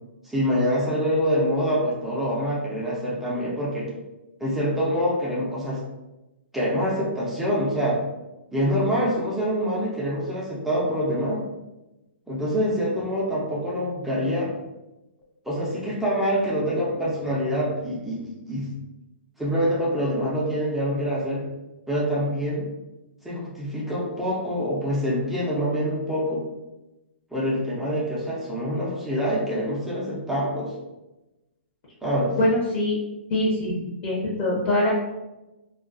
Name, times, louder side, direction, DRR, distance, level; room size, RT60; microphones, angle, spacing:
voice 1, 0.2-3.9 4.4-5.8 6.5-8.0 8.5-11.4 12.3-14.5 15.5-18.2 18.5-18.7 19.4-21.4 21.9-22.6 23.2-26.5 27.3-30.7 32.0-32.3, equal, 5° right, -6 dB, 0.4 m, -25 dB
voice 2, 32.4-32.9 33.3-33.7 34.0-34.9, left 1 dB, 40° left, -5 dB, 0.6 m, -23 dB
2.3 x 2.2 x 2.4 m, 1.0 s
hypercardioid pair, 145°, 6 cm